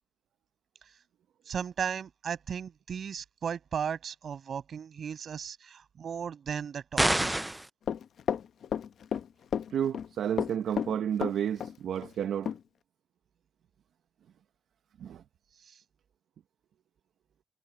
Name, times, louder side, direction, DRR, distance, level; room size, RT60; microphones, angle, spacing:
voice 1, 1.5-7.3, right 7 dB, 45° right, 6.5 m, -36 dB
sound 1, 7.0-7.7, right 1 dB, 5° right, 0.3 m, -26 dB
Run, 7.9-9.2 9.5-10.1 10.4-11.7 12.0-12.1 12.5-12.6, left 8 dB, 60° left, 0.8 m, -31 dB
voice 2, 9.7-12.5 15.0-15.2, right 9 dB, 70° right, 0.8 m, -31 dB
wide cardioid pair, 165°, 0 cm